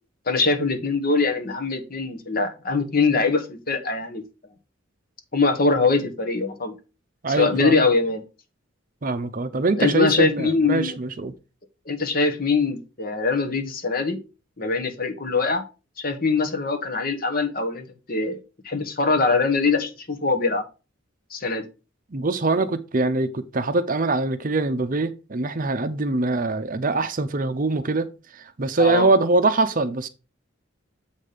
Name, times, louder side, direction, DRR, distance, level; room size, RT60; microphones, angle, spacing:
voice 1, 0.3-4.2 5.3-6.8 7.3-8.2 9.8-11.0 11.8-14.2 14.6-15.6 16.0-18.4 18.6-20.6 21.3-21.6 28.8-29.1, left 4 dB, 45° left, 1.3 m, -23 dB
voice 2, 7.2-7.8 9.0-11.3 22.1-28.1 28.3-30.1, right 3 dB, 40° right, 0.6 m, -23 dB
7.3 x 4.2 x 5.0 m
head